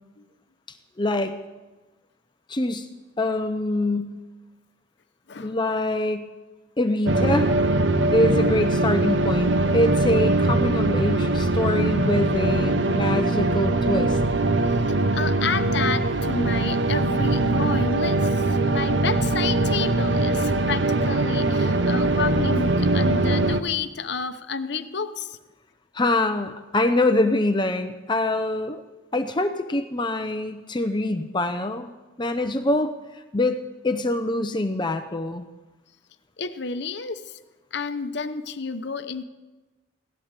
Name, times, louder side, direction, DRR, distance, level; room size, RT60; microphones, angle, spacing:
voice 1, 1.0-1.4 2.5-2.9 3.2-4.2 5.4-6.3 6.8-7.5 8.1-14.2 25.9-28.8 29.1-31.9 32.2-35.4, left 1 dB, 25° left, 8 dB, 0.6 m, -24 dB
sound 1, 7.0-23.6, right 2 dB, 65° right, 0.7 m, -22 dB
voice 2, 15.1-25.4 36.4-37.4 37.7-39.2, left 5 dB, 60° left, 10 dB, 0.8 m, -30 dB
17.5 x 12.0 x 6.7 m, 1.2 s
head